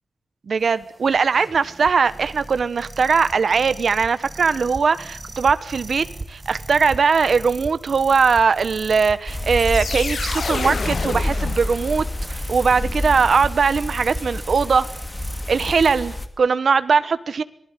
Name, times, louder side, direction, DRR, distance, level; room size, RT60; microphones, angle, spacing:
voice 1, 0.5-14.9 15.5-17.4, right 5 dB, 65° right, 13 dB, 1.2 m, -20 dB
sound 1, 0.6-16.0, right 2 dB, 25° right, 2.1 m, -37 dB
sound 2, 9.3-16.3, left 1 dB, 20° left, 2.3 m, -29 dB
sound 3, 9.5-12.3, left 5 dB, 60° left, 1.0 m, -29 dB
26.0 x 19.5 x 8.4 m, 0.66 s
wide cardioid pair, 130°, 0 cm